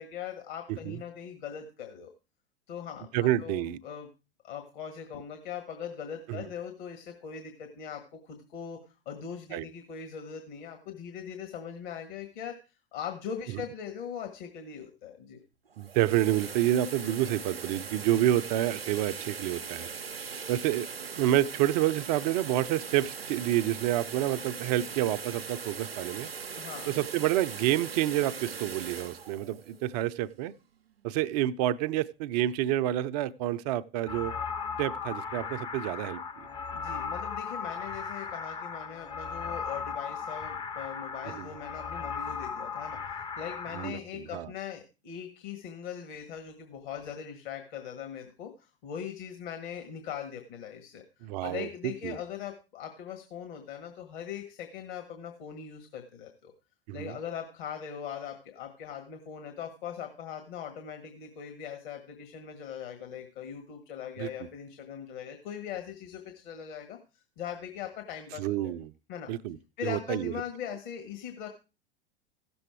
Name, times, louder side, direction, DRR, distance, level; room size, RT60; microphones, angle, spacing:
voice 1, 0.0-2.1 2.7-4.1 4.4-12.6 12.9-15.4 26.6-27.0 36.7-56.5 56.9-68.7 69.1-69.3 69.8-71.5, left 8 dB, 55° left, 1.8 m, -40 dB
voice 2, 0.7-1.0 3.1-3.8 6.3-6.4 9.5-9.6 13.5-13.6 15.8-19.9 20.5-20.9 21.1-26.3 26.9-30.5 31.0-34.3 34.8-36.5 41.4-41.5 43.7-44.5 51.2-52.2 56.9-57.2 64.2-64.5 68.4-68.9 69.3-70.3, right 13 dB, 45° right, 0.6 m, -29 dB
sound 1, 15.7-30.6, right 5 dB, 85° right, 0.6 m, -40 dB
sound 2, 34.1-43.9, left 6 dB, 15° left, 0.7 m, -37 dB
16.0 x 7.0 x 4.6 m
figure-of-eight pair, 85°, 30 cm